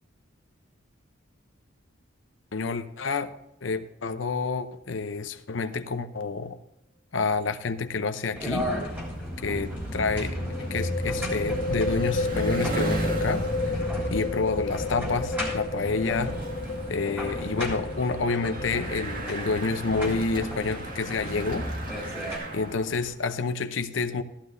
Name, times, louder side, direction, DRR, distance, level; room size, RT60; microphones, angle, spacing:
voice 1, 2.5-3.3 3.6-6.6 7.1-8.7 9.4-13.8 14.1-16.3 16.9-21.7 22.5-24.2, left 4 dB, 70° left, 9 dB, 0.7 m, -29 dB
sound 1, 7.2-7.5 7.7-7.8 10.3-21.7, left 3 dB, 40° left, 1.8 m, -33 dB
sound 2, 8.4-22.4, equal, 10° right, 3.2 m, -35 dB
Bicycle, 8.8-23.2, right 1 dB, 45° right, 1.9 m, -36 dB
14.5 x 11.5 x 2.6 m, 0.86 s
head